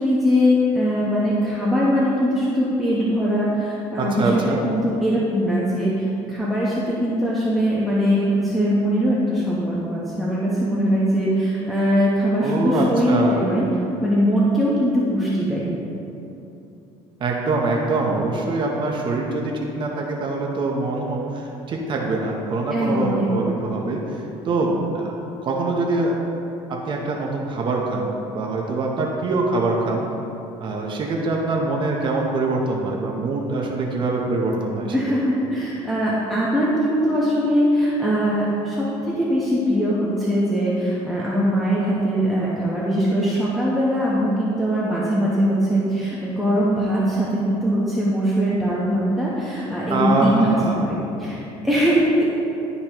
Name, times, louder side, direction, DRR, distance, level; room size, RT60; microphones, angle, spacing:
voice 1, 0.0-13.7 14.0-15.7 22.7-23.3 34.9-52.2, equal, ahead, -8 dB, 1.1 m, -21 dB
voice 2, 4.0-4.6 12.4-13.4 17.2-26.2 26.7-30.1 30.6-34.9 49.9-50.8, right 2 dB, 45° right, -1 dB, 0.9 m, -24 dB
12.0 x 4.1 x 3.0 m, 2.8 s
cardioid pair, 110°, 12 cm